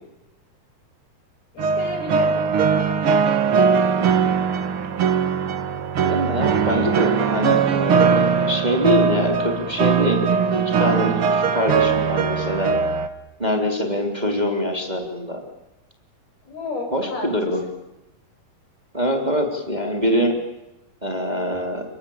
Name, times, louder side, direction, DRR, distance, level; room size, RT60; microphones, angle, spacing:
voice 1, 1.5-3.0 16.4-17.3 17.6-17.7, left 3 dB, 65° left, 3 dB, 7.6 m, -32 dB
sound 1, 1.6-13.1, right 6 dB, 80° right, 1.2 m, -20 dB
voice 2, 6.0-10.2 10.5-12.8 13.4-15.4 16.9-17.6 18.9-20.4 21.0-21.8, left 1 dB, 10° right, 3 dB, 3.1 m, -24 dB
29.5 x 22.0 x 8.8 m, 0.92 s
omnidirectional pair, 4.8 m